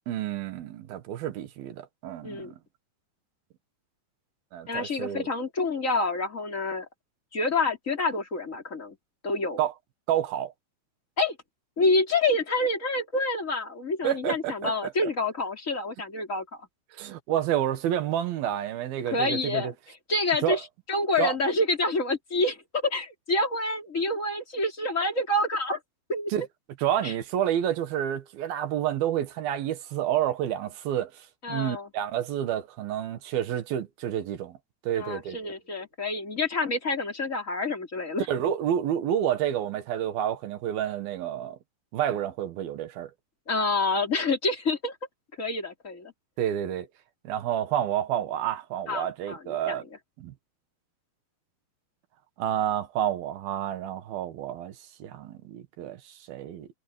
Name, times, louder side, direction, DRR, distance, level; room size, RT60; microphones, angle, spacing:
voice 1, 0.1-2.6 4.5-5.3 9.6-9.7 10.1-10.5 14.0-15.1 16.9-19.7 20.4-20.6 21.2-21.4 26.3-26.5 26.8-34.6 34.8-35.5 38.3-41.6 41.9-43.1 46.4-46.9 47.2-49.8 50.2-50.3 52.4-56.7, right 10 dB, 80° right, 3.4 m, -29 dB
voice 2, 2.2-2.5 4.7-6.9 7.3-9.0 9.2-9.6 11.2-11.4 11.8-16.4 19.1-19.7 20.1-20.6 20.9-25.8 26.1-26.3 27.0-27.1 31.4-31.9 34.9-38.2 43.5-44.9 45.4-46.1 48.9-49.8, left 2 dB, 20° left, 3.5 m, -27 dB
omnidirectional pair, 4.3 m